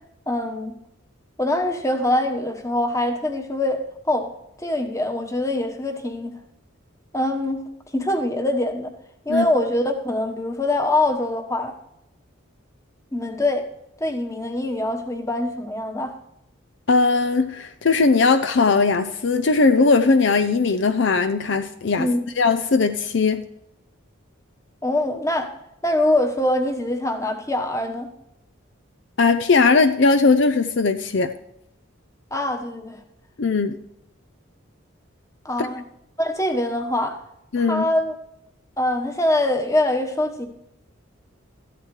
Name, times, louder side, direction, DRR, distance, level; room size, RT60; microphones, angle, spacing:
voice 1, 0.3-0.8 1.4-4.3 4.6-6.3 7.1-7.6 7.9-8.9 9.2-11.7 13.1-13.7 14.0-16.1 22.0-22.2 24.8-25.5 25.8-28.1 32.3-33.0 35.4-35.8 36.2-37.2 37.6-38.1 38.8-40.5, left 1 dB, 15° left, 5 dB, 1.2 m, -23 dB
voice 2, 16.9-22.1 22.4-23.4 29.2-31.3 33.4-33.8 35.6-35.7 37.5-37.9, left 4 dB, 60° left, 9 dB, 0.6 m, -19 dB
14.5 x 12.0 x 3.2 m, 0.82 s
head